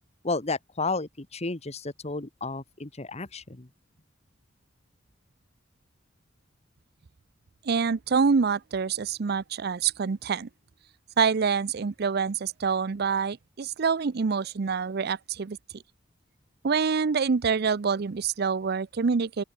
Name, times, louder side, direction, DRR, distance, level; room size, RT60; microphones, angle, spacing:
voice 1, 0.2-3.7, left 3 dB, 35° left, 1.4 m, -32 dB
voice 2, 7.6-10.5 11.2-15.8 16.6-19.4, right 5 dB, 55° right, 0.5 m, -26 dB
open air
head